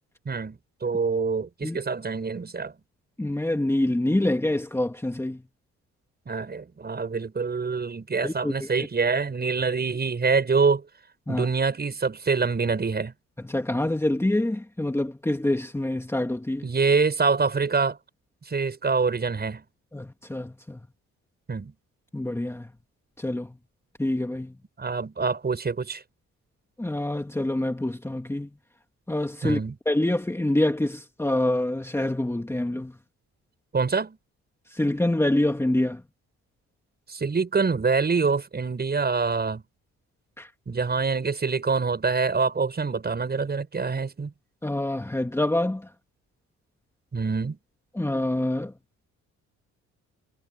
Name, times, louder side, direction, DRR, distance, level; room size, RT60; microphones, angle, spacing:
voice 1, 0.3-2.7 6.3-10.9 11.3-13.1 16.6-18.0 18.5-19.6 21.5-21.7 24.8-26.0 29.4-29.8 33.7-34.2 37.1-39.6 40.7-44.3 47.1-47.6, right 4 dB, 35° right, 7.0 m, -25 dB
voice 2, 3.2-5.4 8.2-8.5 11.3-11.5 13.4-16.7 19.9-20.8 22.1-22.7 23.2-23.6 24.0-24.6 26.8-28.5 29.1-29.6 29.9-33.0 34.7-36.0 40.4-40.5 44.6-45.9 47.9-48.7, left 1 dB, 10° left, 2.2 m, -26 dB
cardioid pair, 90°, 30 cm